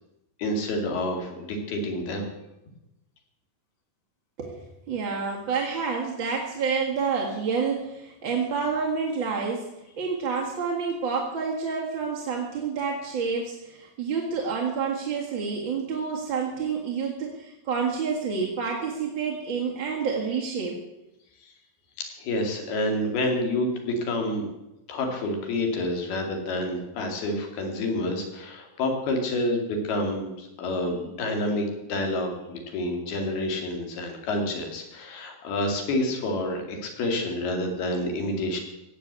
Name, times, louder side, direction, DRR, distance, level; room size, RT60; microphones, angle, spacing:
voice 1, 0.4-2.3 21.4-21.5 22.0-24.5 24.9-38.6, left 1 dB, 85° left, 3 dB, 4.3 m, -28 dB
voice 2, 4.4-9.7 10.0-20.8, right 5 dB, 45° right, -2 dB, 1.8 m, -28 dB
16.5 x 8.4 x 8.2 m, 0.94 s
omnidirectional pair, 4.3 m